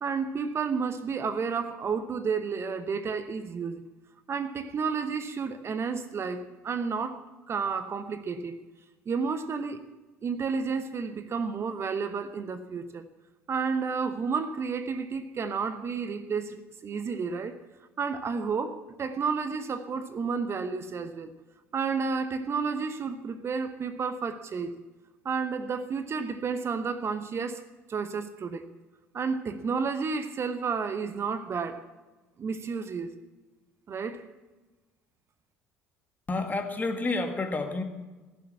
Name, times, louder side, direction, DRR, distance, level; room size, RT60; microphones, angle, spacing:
voice 1, 0.0-3.8 4.3-7.2 7.5-8.6 9.1-9.8 10.2-13.1 13.5-17.6 18.0-21.3 21.7-24.7 25.2-27.6 27.9-28.7 29.1-31.9 32.4-33.1 33.9-34.3, right 5 dB, 40° right, 10 dB, 0.9 m, -31 dB
voice 2, 36.3-37.8, left 3 dB, 25° left, 5 dB, 1.9 m, -29 dB
15.5 x 7.1 x 8.5 m, 1.2 s
hypercardioid pair, 60°, 7 cm